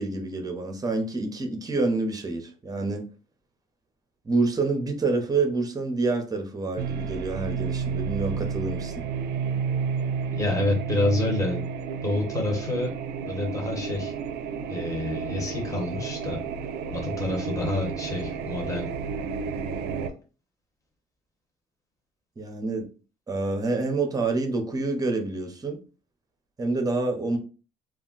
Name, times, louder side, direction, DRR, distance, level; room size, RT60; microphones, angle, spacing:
voice 1, 0.0-3.0 4.2-9.0 22.4-22.8 23.3-25.8 26.6-27.4, right 3 dB, 20° right, 4 dB, 0.7 m, -27 dB
sound 1, 6.8-20.1, right 6 dB, 75° right, 0.4 m, -31 dB
voice 2, 10.4-11.6 12.0-12.9 13.3-14.1 14.7-16.4 16.9-18.9, left 2 dB, 20° left, 0 dB, 1.1 m, -28 dB
2.4 x 2.1 x 3.8 m, 0.36 s
cardioid pair, 110°, 17 cm